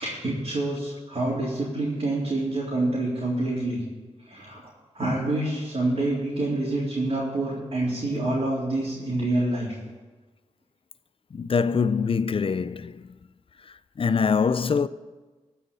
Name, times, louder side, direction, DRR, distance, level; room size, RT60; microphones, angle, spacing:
voice 1, 0.0-3.8 4.2-4.6 4.9-9.7, right 2 dB, 50° right, 3.9 m, -27 dB
voice 2, 11.3-13.1 13.7-14.9, left 5 dB, 50° left, 0.5 m, -24 dB
15.5 x 5.7 x 8.8 m
cardioid pair, 65°, 12 cm